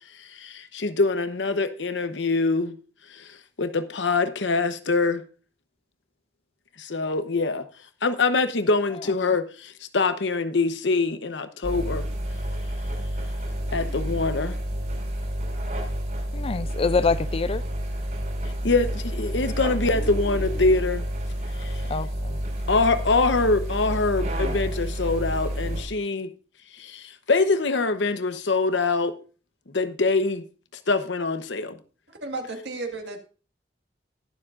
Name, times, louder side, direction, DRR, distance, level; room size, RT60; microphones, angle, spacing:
voice 1, 0.2-2.7 3.1-5.2 6.8-7.6 8.0-12.1 13.7-14.6 18.6-21.0 21.6-21.8 22.7-26.3 26.8-29.1 29.7-30.4 30.9-31.7, left 3 dB, 90° left, 0.9 m, -24 dB
sound 1, 11.6-25.8, equal, 50° right, 5.1 m, -29 dB
voice 2, 16.3-17.6 21.9-22.4, left 4 dB, 30° left, 0.4 m, -26 dB
voice 3, 32.1-33.2, right 2 dB, 75° right, 1.9 m, -33 dB
21.0 x 7.2 x 2.5 m
head